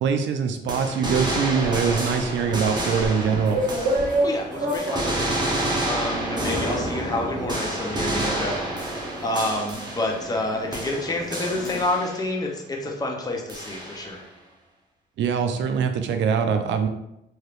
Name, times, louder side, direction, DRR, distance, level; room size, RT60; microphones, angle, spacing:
voice 1, 0.0-3.6 15.2-16.9, right 6 dB, 70° right, 6 dB, 0.4 m, -23 dB
sound 1, 0.7-4.4 4.7-10.4 10.7-12.4 13.5-14.2, right 1 dB, 20° right, 0.8 m, -29 dB
sound 2, 1.6-11.9, right 1 dB, 40° right, 1.1 m, -32 dB
voice 2, 4.2-14.2, left 2 dB, 20° left, 0 dB, 0.6 m, -29 dB
3.2 x 2.8 x 2.4 m, 0.86 s
cardioid pair, 90°, 20 cm